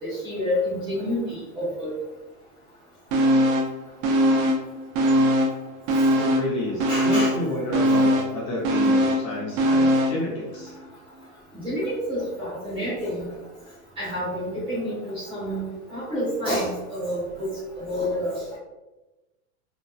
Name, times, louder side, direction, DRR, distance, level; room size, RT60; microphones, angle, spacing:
voice 1, 0.0-1.9 6.9-7.3 11.5-13.3 14.0-15.6 15.9-17.5 17.8-18.6, equal, 10° right, -10 dB, 0.7 m, -28 dB
sound 1, 3.1-3.8 4.0-5.6 5.9-10.2 10.6-10.7, equal, 65° right, 0.6 m, -21 dB
voice 2, 6.2-10.7, left 1 dB, 35° left, -5 dB, 0.7 m, -30 dB
2.9 x 2.1 x 2.3 m, 1.1 s
supercardioid pair, 160°, 44 cm